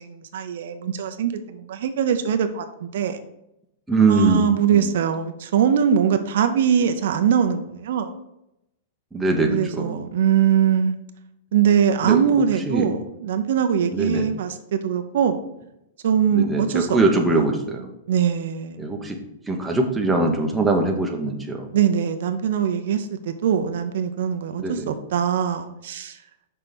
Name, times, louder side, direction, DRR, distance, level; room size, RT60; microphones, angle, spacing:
voice 1, 0.0-3.2 4.1-8.1 9.5-11.0 11.5-15.4 16.0-17.0 18.1-18.9 21.7-26.2, right 8 dB, 65° right, 8 dB, 0.6 m, -22 dB
voice 2, 3.9-4.4 4.7-4.9 9.1-10.0 12.0-12.2 12.7-12.9 13.9-14.3 16.3-17.9 18.8-19.2 19.5-21.7 24.6-24.9, right 3 dB, 5° right, 1 dB, 0.8 m, -22 dB
6.2 x 4.3 x 5.1 m, 0.86 s
supercardioid pair, 160°, 0 cm